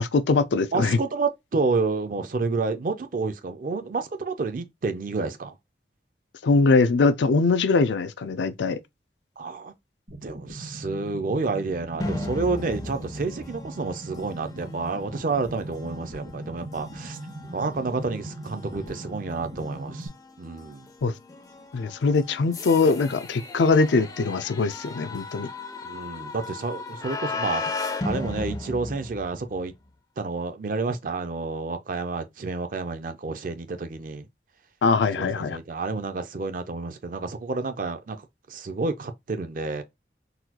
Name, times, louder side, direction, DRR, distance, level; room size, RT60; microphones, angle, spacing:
voice 1, 0.0-1.0 6.4-8.8 21.0-21.1 21.7-25.5 34.8-35.6, left 4 dB, 85° left, 0.4 m, -22 dB
voice 2, 0.7-5.5 9.4-9.7 10.2-17.2 17.5-20.1 20.4-20.9 25.8-29.7 30.2-34.3 35.2-39.8, right 3 dB, 50° right, 0.4 m, -29 dB
sound 1, 10.1-20.1, right 1 dB, 70° right, 1.4 m, -40 dB
sound 2, 12.0-29.7, left 3 dB, 20° left, 0.4 m, -37 dB
4.0 x 2.2 x 2.8 m
head